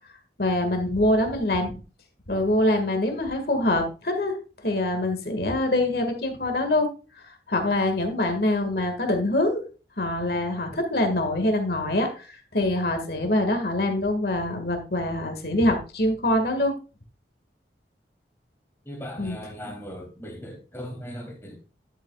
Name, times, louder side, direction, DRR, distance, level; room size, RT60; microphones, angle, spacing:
voice 1, 0.4-1.8 2.3-4.3 4.6-6.9 7.5-9.6 10.0-12.2 12.5-16.7 19.2-19.4 19.6-19.7, left 1 dB, 60° left, 1.9 m, -24 dB
voice 2, 18.9-21.6, equal, 15° left, 2.4 m, -38 dB
11.0 x 8.0 x 2.3 m
head